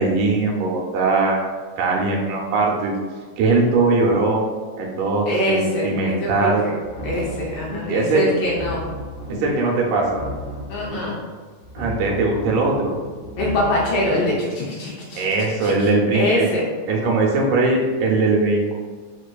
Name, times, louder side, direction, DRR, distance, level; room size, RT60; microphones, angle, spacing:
voice 1, 0.0-1.4 1.8-2.9 3.4-4.5 4.8-6.6 7.9-8.3 9.4-10.2 11.8-12.9 15.2-16.5 16.9-18.7, right 3 dB, 85° right, -1 dB, 2.0 m, -20 dB
voice 2, 5.3-6.7 7.0-8.8 10.7-11.2 13.4-15.3 15.6-16.7, left 1 dB, 90° left, -5 dB, 1.3 m, -24 dB
sound 1, 6.8-8.1 8.4-9.7 10.0-11.3 11.6-14.4, left 1 dB, 55° left, 1.6 m, -33 dB
5.0 x 2.4 x 2.2 m, 1.4 s
omnidirectional pair, 3.5 m